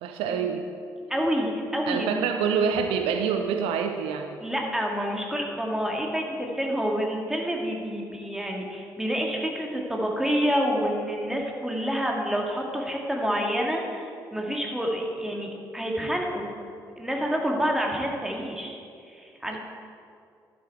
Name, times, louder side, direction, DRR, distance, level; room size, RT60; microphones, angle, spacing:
voice 1, 0.0-0.7 1.9-4.4 19.5-19.6, right 6 dB, 65° right, 6 dB, 0.5 m, -26 dB
voice 2, 1.1-2.3 4.4-16.5 17.0-18.8 19.1-19.6, equal, 5° right, 0 dB, 2.0 m, -28 dB
11.5 x 8.0 x 4.5 m, 2.4 s
figure-of-eight pair, 45°, 10 cm